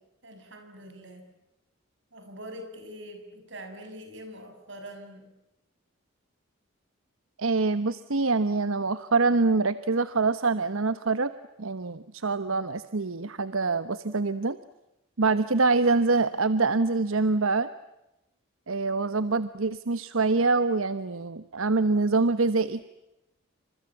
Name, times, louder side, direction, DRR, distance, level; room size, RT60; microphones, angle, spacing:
voice 1, 0.2-1.3 2.1-5.3, equal, 60° right, 6 dB, 6.9 m, -43 dB
voice 2, 7.4-11.3 11.6-14.6 15.2-17.7 18.7-22.8, right 3 dB, 80° right, 13 dB, 1.0 m, -25 dB
28.5 x 26.5 x 7.2 m, 0.94 s
head